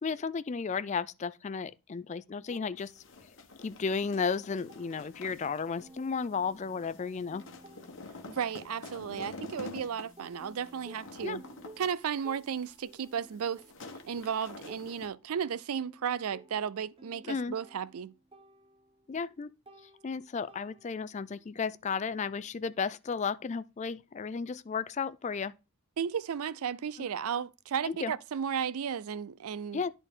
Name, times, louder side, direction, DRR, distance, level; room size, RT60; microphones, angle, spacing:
voice 1, 0.0-3.0 3.6-7.5 11.2-11.4 17.3-17.5 19.1-19.5 20.0-25.5 27.8-28.1 29.7-29.9, left 5 dB, 30° left, 0.3 m, -34 dB
sound 1, 2.5-3.6 3.9-5.5 5.8-9.8 10.2-21.2, right 1 dB, 25° right, 0.7 m, -56 dB
sound 2, 2.8-15.1, left 3 dB, 55° left, 1.1 m, -48 dB
sound 3, 5.7-11.8, left 1 dB, 5° left, 1.3 m, -62 dB
voice 2, 8.3-11.4 11.8-13.6 14.0-18.1 26.0-29.8, right 7 dB, 75° right, 0.4 m, -34 dB
11.0 x 4.1 x 3.6 m
head